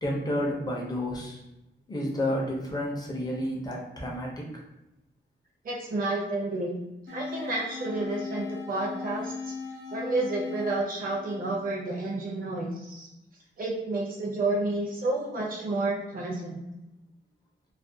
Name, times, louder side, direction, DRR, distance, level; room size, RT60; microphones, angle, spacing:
voice 1, 0.0-1.4 1.9-4.6, left 1 dB, 20° left, -3 dB, 0.5 m, -31 dB
voice 2, 5.6-6.8 7.1-9.5 9.9-13.1 13.6-16.6, right 2 dB, 45° right, -3 dB, 0.5 m, -30 dB
sound 1, 7.1-12.1, left 4 dB, 65° left, 0.6 m, -38 dB
2.4 x 2.1 x 2.6 m, 0.93 s
wide cardioid pair, 175°, 20 cm